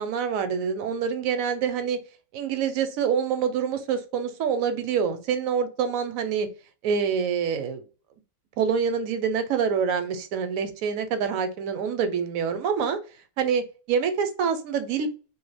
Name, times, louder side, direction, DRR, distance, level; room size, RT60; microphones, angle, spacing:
voice 1, 0.0-2.0 2.3-6.5 6.8-7.8 8.6-13.0 13.4-15.1, right 7 dB, 75° right, 9 dB, 1.0 m, -26 dB
2.5 x 2.2 x 3.2 m, 0.35 s
omnidirectional pair, 1.5 m